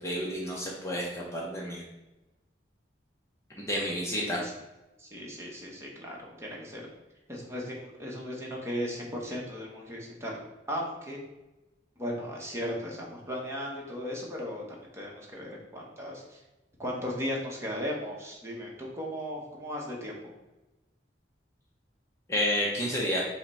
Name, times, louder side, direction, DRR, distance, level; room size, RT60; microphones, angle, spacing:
voice 1, 0.0-1.8 3.6-4.4 22.3-23.2, equal, 15° left, -4 dB, 0.6 m, -30 dB
voice 2, 4.2-4.5 5.0-6.8 7.3-10.4 10.7-11.2 12.0-14.6 14.9-16.2 16.8-20.1, equal, 15° right, -2 dB, 0.8 m, -36 dB
5.6 x 2.1 x 4.1 m, 1.0 s
head